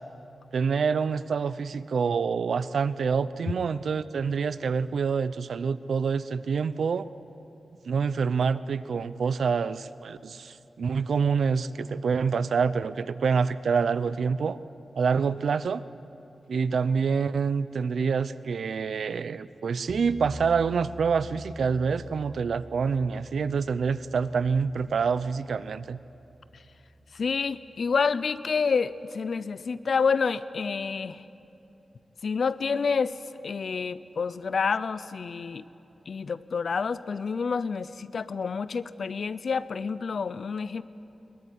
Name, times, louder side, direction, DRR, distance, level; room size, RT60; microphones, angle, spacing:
voice 1, 0.5-7.1 7.9-14.6 15.0-15.8 16.5-26.0, right 5 dB, 85° right, 15 dB, 0.6 m, -26 dB
sound 1, 19.9-28.1, right 1 dB, 10° left, 7.1 m, -46 dB
voice 2, 27.1-31.2 32.2-33.2 33.4-35.6 36.1-40.8, left 5 dB, 65° left, 15 dB, 0.7 m, -28 dB
22.0 x 20.5 x 10.0 m, 2.9 s
wide cardioid pair, 140°, 0 cm